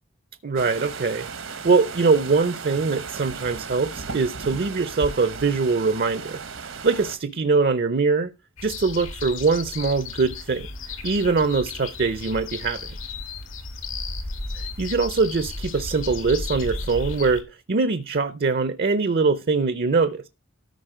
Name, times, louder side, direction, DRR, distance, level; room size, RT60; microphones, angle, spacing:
voice 1, 0.4-8.3 8.6-10.7 11.0-12.8 14.5-20.3, right 4 dB, 50° right, 0.6 m, -23 dB
sound 1, 0.6-7.2, right 5 dB, 85° right, 1.5 m, -36 dB
sound 2, 8.6-17.4, left 3 dB, 85° left, 2.3 m, -34 dB
13.5 x 5.1 x 4.8 m
head